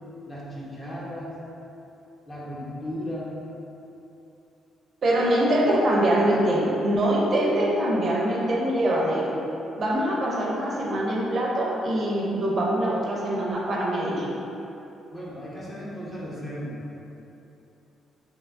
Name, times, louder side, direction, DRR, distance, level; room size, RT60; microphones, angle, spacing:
voice 1, 0.3-1.4 2.3-3.4 15.1-16.8, equal, 20° left, -7 dB, 0.8 m, -35 dB
voice 2, 5.0-9.4 9.8-14.4, right 1 dB, 50° right, -3 dB, 0.5 m, -23 dB
3.3 x 2.7 x 2.5 m, 2.9 s
cardioid pair, 90°, 0 cm